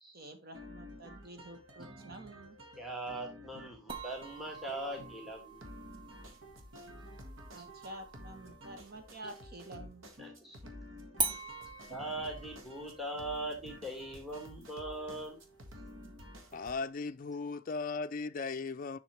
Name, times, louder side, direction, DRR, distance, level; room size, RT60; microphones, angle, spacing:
voice 1, 0.1-2.6 7.5-10.1, right 1 dB, 50° right, 1.4 m, -49 dB
sound 1, 0.5-16.8, equal, 75° right, 1.7 m, -51 dB
voice 2, 2.8-5.6 10.2-10.6 11.9-15.4, right 1 dB, ahead, 1.5 m, -40 dB
sound 2, 3.9-9.5 11.2-16.2, right 3 dB, 25° right, 1.2 m, -44 dB
voice 3, 16.5-19.0, left 4 dB, 45° left, 0.4 m, -37 dB
7.3 x 5.9 x 3.2 m
head